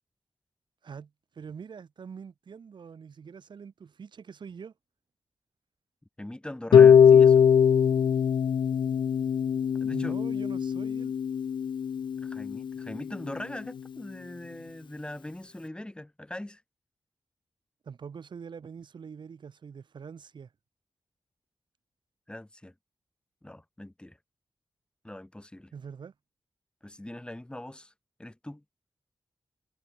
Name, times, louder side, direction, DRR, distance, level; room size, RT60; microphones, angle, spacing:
voice 1, 0.8-4.7 9.9-11.1 17.8-20.5 25.7-26.1, right 6 dB, 75° right, 4.2 m, -44 dB
voice 2, 6.2-7.4 9.8-10.1 12.2-16.6 22.3-22.7 23.4-24.2 25.0-25.7 26.8-27.9 28.2-28.6, left 1 dB, 10° left, 5.5 m, -41 dB
Harp, 6.7-12.8, left 7 dB, 80° left, 0.6 m, -21 dB
wide cardioid pair, 95°, 8 cm